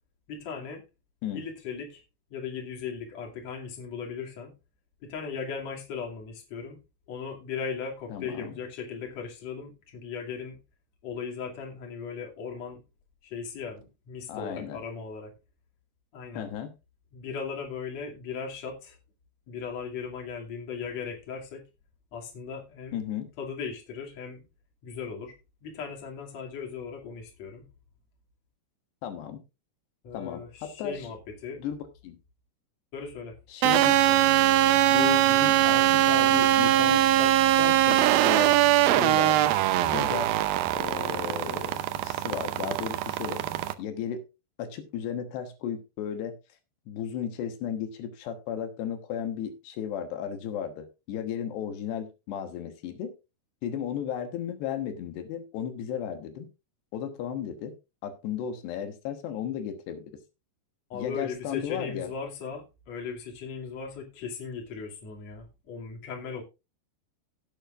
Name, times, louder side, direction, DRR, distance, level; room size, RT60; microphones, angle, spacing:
voice 1, 0.3-0.8 1.3-2.0 2.3-4.5 5.0-6.8 7.1-10.6 11.0-12.8 13.2-15.3 16.1-16.5 17.1-19.0 19.5-21.6 22.1-22.9 23.4-24.5 24.8-25.3 25.6-27.7 30.0-31.6 32.9-33.4 60.9-66.4, left 6 dB, 40° left, 0 dB, 3.3 m, -37 dB
voice 2, 8.1-8.5 14.3-14.8 16.3-16.8 22.9-23.3 29.0-29.4 30.1-31.0 31.6-32.2 33.5-34.2 34.9-38.6 38.8-40.5 40.7-43.4 43.8-44.2 44.6-46.4 46.9-53.1 53.6-56.5 56.9-57.8 58.0-60.2 60.9-62.1, left 9 dB, 70° left, 7 dB, 3.3 m, -35 dB
sound 1, 33.6-43.7, right 13 dB, 85° right, 2.1 m, -22 dB
17.0 x 8.8 x 2.5 m, 0.27 s
omnidirectional pair, 5.2 m